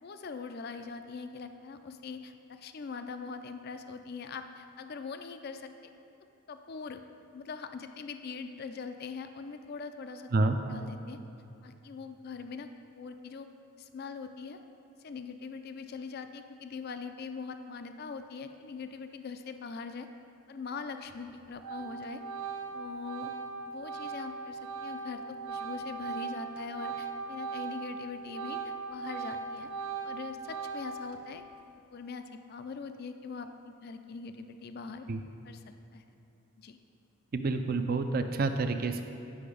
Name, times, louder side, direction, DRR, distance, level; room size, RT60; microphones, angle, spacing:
voice 1, 0.0-5.9 6.5-7.0 7.3-10.3 10.7-11.2 11.6-12.7 12.9-13.5 13.8-14.6 15.0-20.1 20.5-22.2 22.7-23.3 23.7-29.7 30.0-31.4 31.9-35.1 35.4-35.6 35.9-36.0 36.6-36.8, left 5 dB, 45° left, 8 dB, 0.4 m, -42 dB
Organ, 21.1-21.3 21.6-28.0 28.2-31.1, right 5 dB, 80° right, 0.9 m, -39 dB
voice 2, 37.3-39.0, right 3 dB, 40° right, 7 dB, 0.4 m, -28 dB
8.6 x 5.9 x 5.0 m, 2.8 s
head